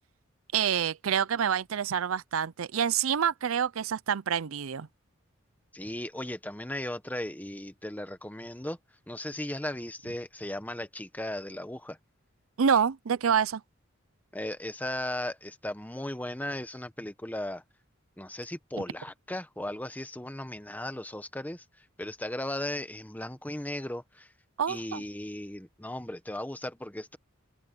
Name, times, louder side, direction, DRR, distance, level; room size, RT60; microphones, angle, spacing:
voice 1, 0.5-4.9 12.6-13.6 24.6-25.0, right 7 dB, 85° right, 0.5 m, -27 dB
voice 2, 5.7-8.8 9.1-12.0 14.3-17.6 18.2-24.3 24.7-27.2, left 1 dB, 10° left, 1.2 m, -36 dB
open air
head